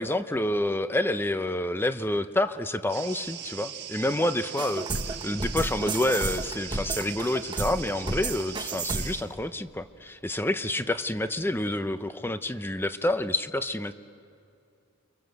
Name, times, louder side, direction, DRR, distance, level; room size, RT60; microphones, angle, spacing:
voice 1, 0.0-4.9 5.2-13.9, left 1 dB, 10° left, 11 dB, 0.7 m, -28 dB
sound 1, 2.9-9.2, right 9 dB, 50° right, 1.7 m, -40 dB
sound 2, 4.6-9.3, right 3 dB, 20° right, 1.1 m, -32 dB
29.5 x 24.5 x 8.0 m, 2.5 s
head